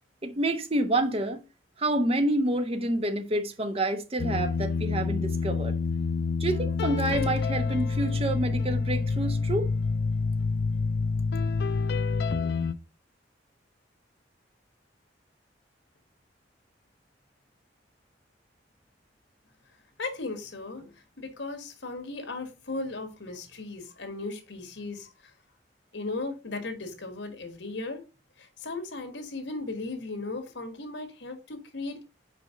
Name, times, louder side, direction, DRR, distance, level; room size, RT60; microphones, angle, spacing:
voice 1, 0.2-1.4 1.8-5.7 6.4-9.7, right 1 dB, 30° right, 0.8 m, -28 dB
sound 1, 4.2-12.7, left 4 dB, 60° left, 0.4 m, -27 dB
voice 2, 20.0-20.9 21.2-25.1 25.9-28.0 28.4-32.0, left 3 dB, 80° left, 1.6 m, -36 dB
5.0 x 4.6 x 4.9 m
head